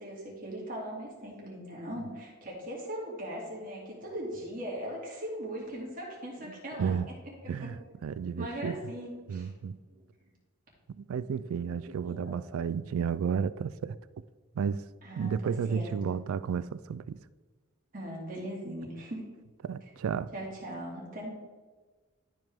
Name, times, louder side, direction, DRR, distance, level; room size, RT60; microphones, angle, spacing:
voice 1, 0.0-6.9 7.4-7.7 8.4-9.5 9.9-10.0 11.7-12.4 15.0-15.9 17.9-19.2 20.3-21.3, equal, 40° right, 2.4 m, -39 dB
voice 2, 6.8-7.1 7.5-7.7 8.0-8.7 9.3-9.8 10.9-14.0 14.5-14.8 15.2-17.2 19.6-20.3, right 6 dB, 80° right, 0.3 m, -32 dB
12.0 x 5.1 x 3.5 m
head